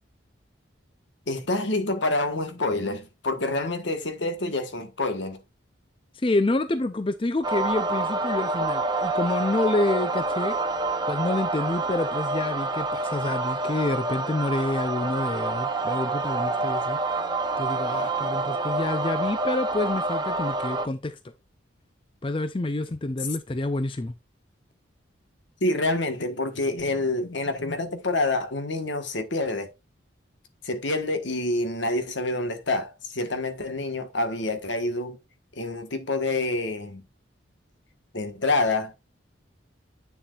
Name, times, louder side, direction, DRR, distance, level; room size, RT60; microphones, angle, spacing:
voice 1, 1.3-5.4 8.6-8.7 25.6-29.7 30.6-35.2 35.6-37.0 38.1-38.9, left 2 dB, 70° left, 1.5 m, -27 dB
voice 2, 6.2-10.6 11.1-17.0 17.6-21.2 22.2-24.1, left 2 dB, 25° left, 0.5 m, -28 dB
sound 1, 7.4-20.9, right 3 dB, 20° right, 0.8 m, -27 dB
9.0 x 7.1 x 2.5 m
head